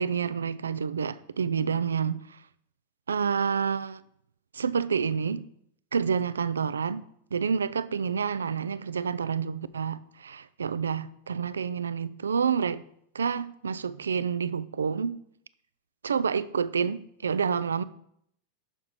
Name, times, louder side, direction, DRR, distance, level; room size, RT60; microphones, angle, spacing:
voice 1, 0.0-2.4 3.1-4.0 4.5-5.4 5.9-7.0 7.3-12.8 13.1-15.2 16.0-17.8, right 6 dB, 70° right, 0.3 m, -28 dB
6.4 x 6.0 x 4.7 m
figure-of-eight pair, 90°, 0 cm